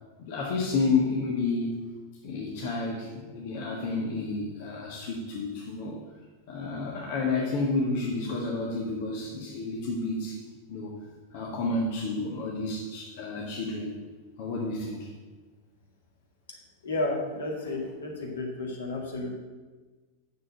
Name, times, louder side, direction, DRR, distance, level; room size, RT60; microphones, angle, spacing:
voice 1, 0.3-1.8 2.2-6.0 6.5-10.4 10.7-10.9 11.3-13.9 14.4-15.1, left 3 dB, 50° left, -3 dB, 1.6 m, -30 dB
voice 2, 16.8-19.4, left 2 dB, 65° left, 0 dB, 2.2 m, -32 dB
7.0 x 6.6 x 7.9 m, 1.3 s
figure-of-eight pair, 90°, 0 cm